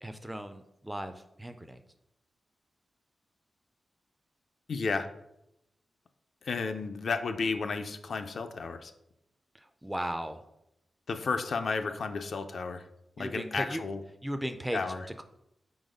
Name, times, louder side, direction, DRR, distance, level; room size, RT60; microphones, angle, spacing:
voice 1, 0.0-1.8 9.8-10.4 13.2-13.8 14.2-15.2, right 1 dB, 5° right, 8 dB, 0.3 m, -36 dB
voice 2, 4.7-5.1 6.5-8.9 11.1-12.8 13.2-14.0 14.7-15.1, left 4 dB, 60° left, 7 dB, 0.4 m, -32 dB
4.9 x 3.9 x 5.0 m, 0.83 s
wide cardioid pair, 165°, 0 cm